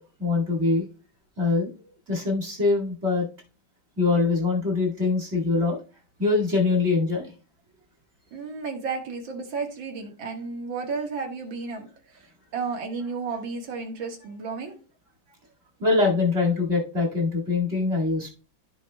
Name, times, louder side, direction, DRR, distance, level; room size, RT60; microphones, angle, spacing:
voice 1, 0.2-0.8 1.4-1.7 2.1-3.3 4.0-5.8 6.2-7.3 15.8-18.3, left 3 dB, 35° right, -3 dB, 2.3 m, -23 dB
voice 2, 8.3-11.9 12.5-14.7, right 4 dB, 75° right, 2 dB, 2.3 m, -32 dB
14.5 x 4.8 x 2.2 m, 0.36 s
omnidirectional pair, 2.1 m